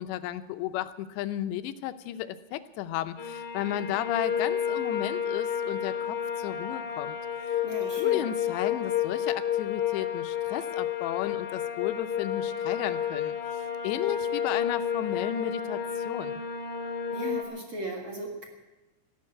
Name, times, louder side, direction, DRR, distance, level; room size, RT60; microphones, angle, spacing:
voice 1, 0.0-7.6 8.0-13.4 13.8-16.4, left 12 dB, 80° left, 12 dB, 2.9 m, -34 dB
sound 1, 3.2-17.4, left 8 dB, 55° left, 3.4 m, -31 dB
voice 2, 7.6-8.2 17.1-18.5, right 2 dB, 55° right, 1 dB, 1.4 m, -37 dB
14.5 x 11.0 x 8.4 m, 1.1 s
omnidirectional pair, 5.2 m